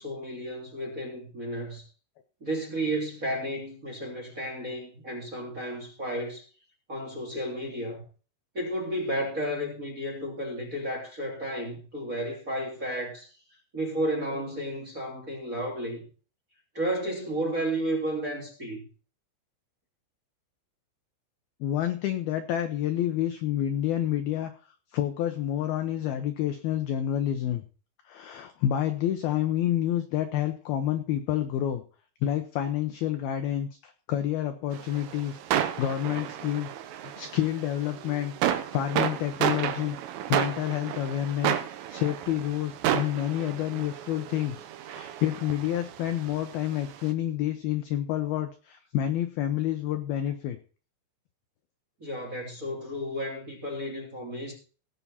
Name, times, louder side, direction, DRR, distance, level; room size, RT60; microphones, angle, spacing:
voice 1, 0.0-1.8 2.4-6.4 6.9-8.0 8.5-13.3 13.7-16.1 16.7-18.8 52.0-54.5, right 1 dB, 20° right, 2.5 m, -32 dB
voice 2, 21.6-24.5 24.9-27.6 28.1-31.8 32.2-38.4 38.7-40.0 40.3-41.6 41.9-50.6, left 11 dB, 85° left, 2.1 m, -29 dB
sound 1, 34.7-47.0, right 11 dB, 90° right, 3.8 m, -32 dB
18.5 x 7.3 x 4.2 m
omnidirectional pair, 5.7 m